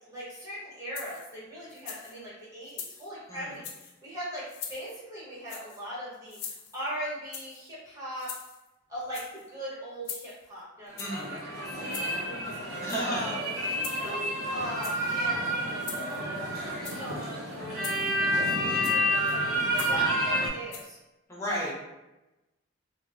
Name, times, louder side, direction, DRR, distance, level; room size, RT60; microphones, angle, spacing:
voice 1, 0.0-6.4 6.7-8.3 8.9-13.4 13.6-14.2 14.5-17.9 18.2-21.0, equal, 15° right, -8 dB, 1.0 m, -40 dB
sound 1, 1.0-1.3 1.7-2.2 2.7-3.1 3.5-3.9 4.5-4.9 5.5-5.8 6.3-6.9 7.3-7.7 8.2-8.7 9.0-9.5 10.1-10.5 11.0-11.3 11.9-12.2 12.8-13.3 13.8-14.3 14.7-15.2 15.8-16.2 16.7-17.1 17.8-18.2 18.8-19.1 19.8-20.1 20.7-20.8, left 7 dB, 90° left, 0.4 m, -42 dB
sound 2, 10.9-20.5, equal, 90° right, 0.7 m, -29 dB
voice 2, 11.0-11.4 12.8-13.3 17.8-18.2 21.3-21.7, equal, 15° left, -5 dB, 0.6 m, -34 dB
2.9 x 2.0 x 2.4 m, 1.0 s
head